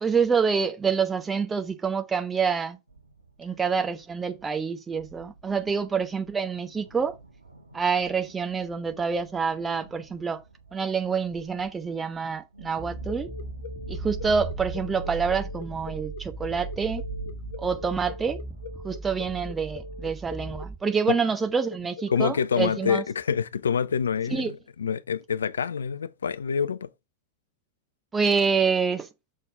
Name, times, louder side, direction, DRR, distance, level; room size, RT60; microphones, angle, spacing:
voice 1, 0.0-2.8 3.4-7.1 7.7-10.4 10.7-13.3 13.9-17.0 17.6-18.4 18.8-23.0 24.3-24.5 28.1-29.1, right 5 dB, 15° right, 0.8 m, -27 dB
sound 1, 2.9-20.1, right 4 dB, 80° right, 1.0 m, -43 dB
sound 2, 12.8-20.8, right 2 dB, 5° left, 1.1 m, -40 dB
sound 3, 13.1-22.9, left 4 dB, 55° left, 1.0 m, -42 dB
voice 2, 22.1-26.9, left 7 dB, 70° left, 0.4 m, -26 dB
6.5 x 4.4 x 4.8 m
figure-of-eight pair, 90°, 0 cm